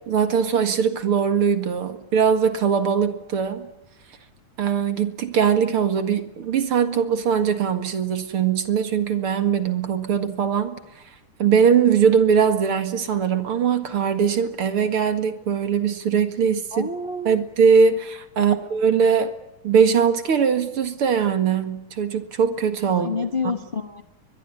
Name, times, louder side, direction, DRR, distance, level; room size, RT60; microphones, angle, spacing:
voice 1, 0.1-3.7 4.6-11.0 11.4-16.9 17.3-19.3 19.6-23.2, right 7 dB, 50° right, 9 dB, 2.5 m, -21 dB
voice 2, 16.7-17.4 18.4-18.6 22.9-24.0, left 4 dB, 85° left, 7 dB, 0.4 m, -29 dB
22.5 x 22.0 x 9.9 m, 0.85 s
omnidirectional pair, 3.6 m